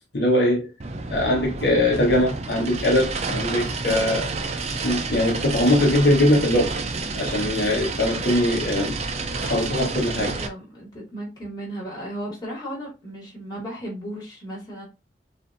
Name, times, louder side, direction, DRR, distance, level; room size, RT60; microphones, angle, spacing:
voice 1, 0.1-0.7 1.1-4.3 4.8-6.8 7.1-9.0 9.4-10.3, left 1 dB, 70° left, 1.2 m, -21 dB
sound 1, 0.8-10.5, right 3 dB, 35° right, 0.5 m, -29 dB
voice 2, 10.1-14.8, right 1 dB, 25° left, 2.4 m, -35 dB
6.7 x 2.7 x 2.6 m
head